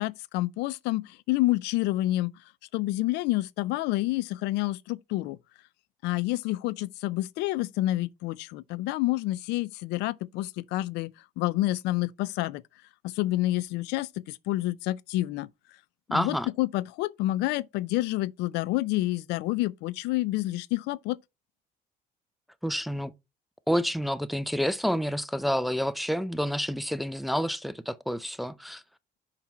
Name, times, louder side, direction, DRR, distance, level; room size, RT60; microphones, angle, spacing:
voice 1, 0.0-2.3 2.7-5.4 6.0-12.6 13.0-15.5 16.1-21.2, left 17 dB, 90° left, 0.4 m, -28 dB
voice 2, 16.1-16.5 22.6-23.1 23.7-28.8, equal, ahead, 0.5 m, -29 dB
6.0 x 5.7 x 4.4 m
cardioid pair, 110°, 17 cm